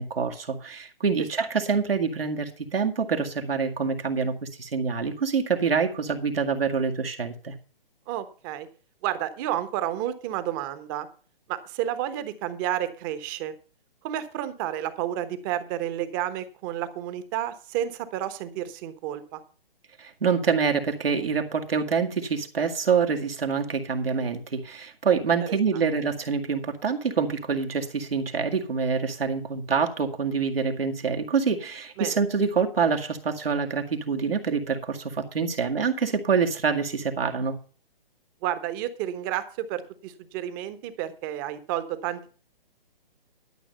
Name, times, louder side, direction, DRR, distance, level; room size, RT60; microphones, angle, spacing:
voice 1, 0.0-7.5 20.0-37.6, right 5 dB, 80° right, 2 dB, 2.1 m, -26 dB
voice 2, 8.1-8.7 9.0-11.1 11.5-13.5 14.0-19.4 32.0-32.2 38.4-42.3, right 12 dB, 20° right, 12 dB, 1.0 m, -31 dB
12.5 x 6.3 x 6.7 m, 0.39 s
hypercardioid pair, 140°, 29 cm